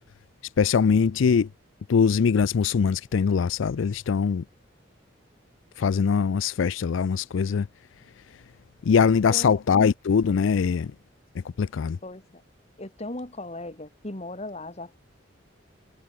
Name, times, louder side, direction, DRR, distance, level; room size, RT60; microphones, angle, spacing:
voice 1, 0.6-1.5 1.9-4.4 5.8-7.7 8.9-10.9 11.6-12.0, left 6 dB, 80° left, 0.4 m, -22 dB
voice 2, 9.3-9.6 12.0-12.4 12.8-15.0, left 2 dB, 35° left, 2.4 m, -37 dB
head